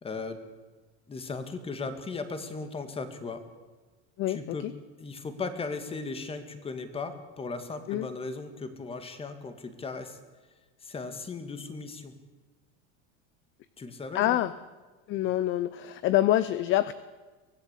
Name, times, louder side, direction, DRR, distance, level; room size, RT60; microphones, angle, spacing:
voice 1, 0.0-0.4 1.1-3.4 4.3-4.7 5.0-10.2 10.8-12.1 13.8-14.4, left 4 dB, 15° left, 9 dB, 2.0 m, -37 dB
voice 2, 4.2-4.7 7.9-8.1 14.1-14.5 15.1-16.9, left 13 dB, 35° left, 15 dB, 0.6 m, -26 dB
24.0 x 17.0 x 8.3 m, 1.3 s
cardioid pair, 160°, 35 cm